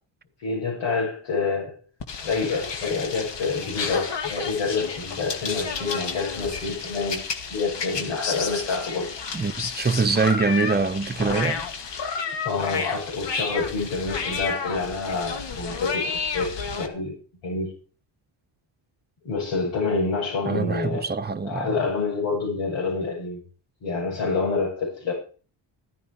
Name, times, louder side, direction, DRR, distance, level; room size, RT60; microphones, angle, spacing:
voice 1, 0.4-1.8 2.2-9.1 12.4-17.2 17.4-17.7 19.2-21.0 21.4-23.4 23.8-25.1, left 4 dB, 80° left, 6.8 m, -27 dB
sound 1, 2.0-16.9, left 5 dB, 60° left, 2.3 m, -31 dB
voice 2, 9.3-11.6 20.4-21.7, right 4 dB, 20° right, 1.1 m, -24 dB
14.5 x 10.0 x 4.8 m
cardioid pair, 95°, 49 cm